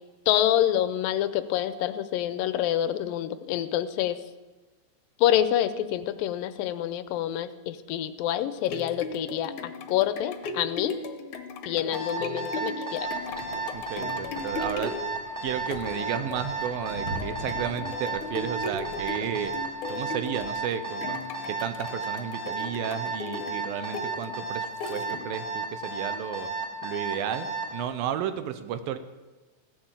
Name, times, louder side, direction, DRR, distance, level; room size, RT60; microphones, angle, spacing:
voice 1, 0.3-4.2 5.2-11.0 11.7-13.4, left 11 dB, 85° left, 13 dB, 2.4 m, -27 dB
sound 1, 8.4-25.5 26.0-26.1, left 3 dB, 70° left, 2.2 m, -38 dB
Alarm, 11.9-27.7, right 4 dB, 15° right, 2.4 m, -33 dB
sound 2, 12.9-20.5, right 1 dB, 45° right, 2.8 m, -43 dB
voice 2, 13.7-15.0 15.4-19.5 19.9-21.2 21.5-26.5 26.8-29.0, right 9 dB, 90° right, 11 dB, 2.7 m, -33 dB
16.0 x 10.5 x 7.3 m, 1.2 s
omnidirectional pair, 4.0 m